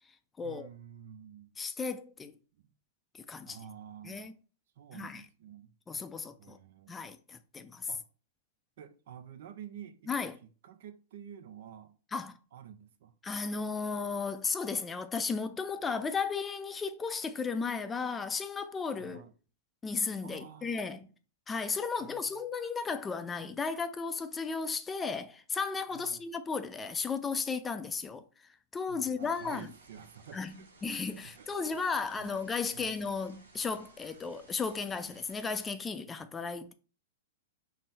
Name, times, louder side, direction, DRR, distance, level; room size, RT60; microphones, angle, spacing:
voice 1, 0.4-1.5 2.6-2.7 3.4-4.4 4.8-5.7 6.4-7.1 7.9-8.0 8.8-10.3 10.6-11.9 12.5-13.2 19.0-19.3 20.2-20.9 22.0-22.5 25.9-26.2 28.9-30.7 31.3-32.4 32.7-33.1, right 9 dB, 65° right, 0.4 m, -50 dB
voice 2, 1.6-2.4 3.2-3.6 4.0-4.3 4.9-5.2 5.9-6.6 6.9-7.9 10.1-10.4 12.1-12.4 13.2-19.3 19.8-21.1 21.5-29.7 30.3-30.6 30.8-36.7, left 5 dB, 15° left, 0.4 m, -35 dB
sound 1, 29.2-35.7, right 2 dB, 85° right, 0.9 m, -59 dB
3.7 x 2.0 x 4.0 m
hypercardioid pair, 115°, 0 cm